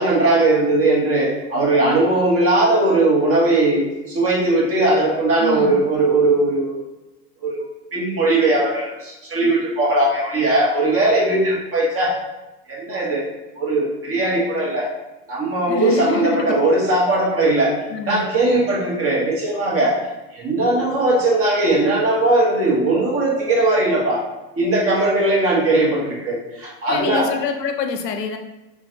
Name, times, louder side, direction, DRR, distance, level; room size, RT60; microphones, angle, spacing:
voice 1, 0.0-6.8 7.4-7.6 7.9-12.1 12.7-13.2 13.6-14.9 15.3-17.7 18.1-20.0 20.3-24.2 24.6-27.3, right 2 dB, 30° right, -4 dB, 1.1 m, -19 dB
voice 2, 5.4-5.8 15.7-16.4 17.9-18.3 26.9-28.4, left 5 dB, 85° left, 5 dB, 0.6 m, -25 dB
3.8 x 2.4 x 2.5 m, 1.0 s
hypercardioid pair, 85°, 48 cm